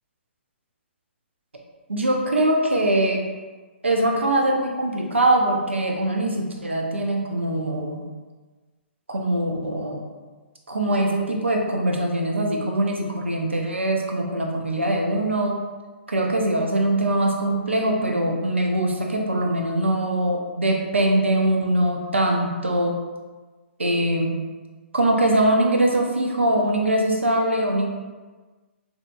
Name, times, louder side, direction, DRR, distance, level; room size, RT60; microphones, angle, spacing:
voice 1, 1.9-3.3 3.8-8.0 9.1-10.1 10.7-15.6 16.1-23.0 23.8-24.4 24.9-27.9, right 1 dB, 80° right, 1 dB, 0.4 m, -22 dB
2.8 x 2.0 x 2.2 m, 1.3 s
figure-of-eight pair, 120°, 6 cm